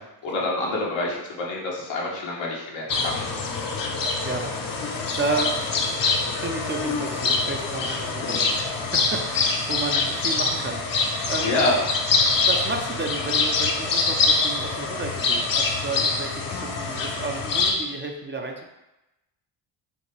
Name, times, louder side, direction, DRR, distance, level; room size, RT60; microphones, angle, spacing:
voice 1, 0.2-3.2 11.4-11.8, left 2 dB, 80° left, -3 dB, 1.3 m, -27 dB
sound 1, 2.9-17.7, left 4 dB, 50° left, 0.8 m, -25 dB
voice 2, 4.2-4.5 4.8-5.7 6.4-11.8 12.2-18.7, right 3 dB, 25° right, 2 dB, 0.6 m, -32 dB
5.2 x 2.8 x 3.3 m, 0.97 s
cardioid pair, 80°, 45 cm